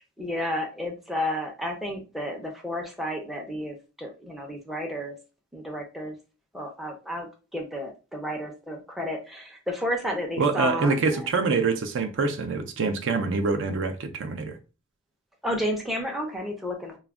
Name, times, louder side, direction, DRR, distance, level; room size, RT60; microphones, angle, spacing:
voice 1, 0.0-5.1 5.5-6.1 6.5-7.3 7.5-10.9 15.4-17.0, equal, ahead, 0.5 m, -31 dB
voice 2, 10.4-14.6, right 4 dB, 60° right, 0.4 m, -25 dB
2.3 x 2.1 x 3.4 m
head